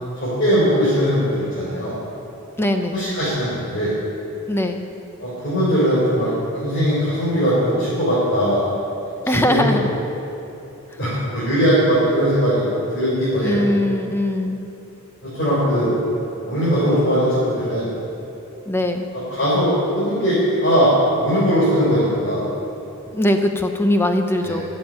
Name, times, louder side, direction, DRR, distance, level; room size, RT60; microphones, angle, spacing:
voice 1, 0.2-2.0 2.9-3.9 5.2-8.7 9.3-9.8 11.0-12.7 12.9-13.6 15.3-15.9 16.4-17.9 19.3-20.9 21.2-22.4 24.4-24.6, equal, 50° left, -10 dB, 3.9 m, -19 dB
voice 2, 2.6-3.0 4.5-4.8 9.3-9.9 13.4-14.7 18.7-19.1 23.1-24.6, left 1 dB, 10° left, 5 dB, 0.8 m, -21 dB
13.5 x 7.4 x 8.9 m, 2.9 s
head